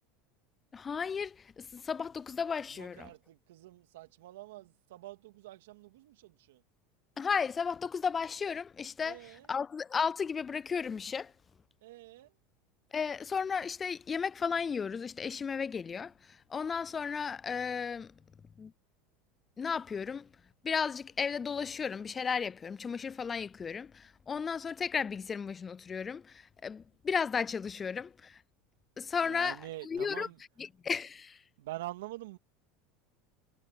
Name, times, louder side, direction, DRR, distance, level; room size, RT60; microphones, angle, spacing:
voice 1, 0.7-3.0 7.2-9.2 9.5-11.3 12.9-16.1 16.5-18.1 18.6-18.7 19.6-20.3 20.6-28.4 29.0-29.6 29.9-30.3 30.8-31.4, left 6 dB, 25° left, 0.3 m, -34 dB
voice 2, 2.7-6.6 9.0-9.5 11.8-12.4 29.2-30.4 31.6-32.4, right 16 dB, 85° right, 2.6 m, -46 dB
supercardioid pair, 115°, 0 cm